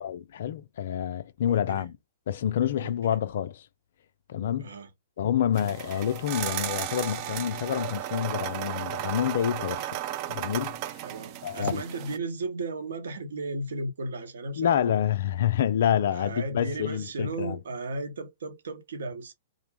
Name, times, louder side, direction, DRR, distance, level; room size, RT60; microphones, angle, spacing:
voice 1, 0.0-1.9 2.3-3.7 4.3-4.7 5.2-10.0 10.3-11.1 11.4-11.8 14.6-17.6, left 10 dB, 60° left, 0.3 m, -28 dB
voice 2, 1.5-1.9 2.8-3.2 4.6-4.9 11.0-15.0 16.1-19.3, right 2 dB, 65° right, 0.8 m, -35 dB
sound 1, 5.5-12.2, right 12 dB, 40° right, 0.4 m, -34 dB
2.5 x 2.0 x 3.2 m
figure-of-eight pair, 110°, 0 cm